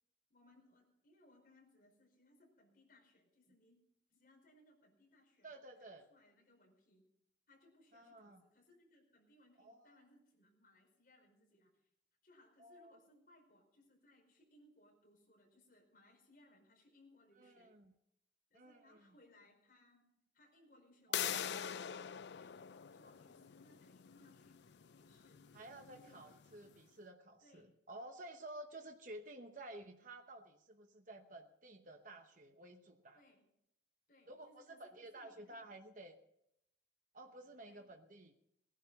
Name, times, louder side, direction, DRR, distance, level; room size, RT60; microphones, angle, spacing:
voice 1, 0.3-3.8 4.1-7.0 7.5-11.8 12.2-17.7 18.5-25.5 25.9-26.3 27.4-27.8 28.7-28.9 33.1-33.5 34.1-35.8 37.7-37.8, left 1 dB, 50° left, 0 dB, 5.0 m, -68 dB
voice 2, 5.4-6.1 7.9-8.4 9.6-9.9 12.6-12.9 17.4-17.9 18.5-19.0 21.1-21.7 25.5-33.2 34.3-36.2 37.1-38.3, right 1 dB, 45° right, 4 dB, 1.0 m, -53 dB
sound 1, 21.1-26.7, left 9 dB, 70° left, 0.4 m, -44 dB
18.0 x 11.0 x 5.4 m, 0.80 s
head